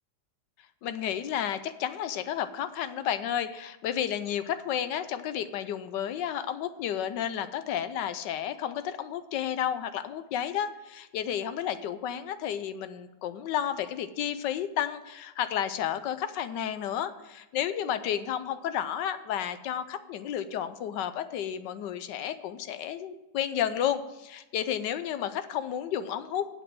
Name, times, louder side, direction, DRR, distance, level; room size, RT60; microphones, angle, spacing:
voice 1, 0.8-26.5, left 10 dB, 70° left, 12 dB, 1.2 m, -32 dB
8.0 x 7.6 x 7.5 m, 0.98 s
omnidirectional pair, 2.1 m